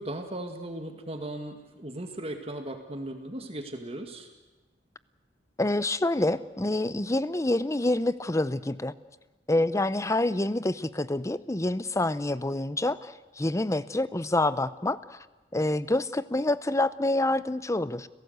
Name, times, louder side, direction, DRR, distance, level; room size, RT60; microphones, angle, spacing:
voice 1, 0.0-4.3, right 1 dB, 35° right, 5 dB, 2.0 m, -37 dB
voice 2, 5.6-8.9 9.5-15.2 15.5-18.1, left 2 dB, 15° left, 16 dB, 0.7 m, -27 dB
30.0 x 17.5 x 8.1 m, 1.1 s
head